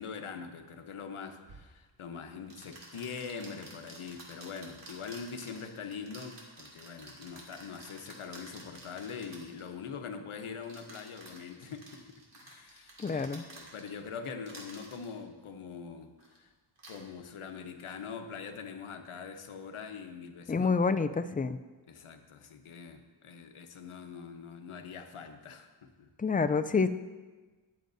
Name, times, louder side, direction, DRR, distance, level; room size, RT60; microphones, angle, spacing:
voice 1, 0.0-16.5 16.9-20.9 21.9-26.1, left 6 dB, 85° left, 6 dB, 1.1 m, -43 dB
sound 1, 1.5-1.6 2.5-9.6 10.6-14.1 14.4-15.1 16.2-16.4 16.8-17.0, right 2 dB, 60° right, 2.7 m, -51 dB
voice 2, 13.0-13.5 20.5-21.6 26.2-26.9, left 4 dB, 20° left, 11 dB, 0.3 m, -28 dB
21.0 x 7.8 x 2.7 m, 1.3 s
wide cardioid pair, 120°, 48 cm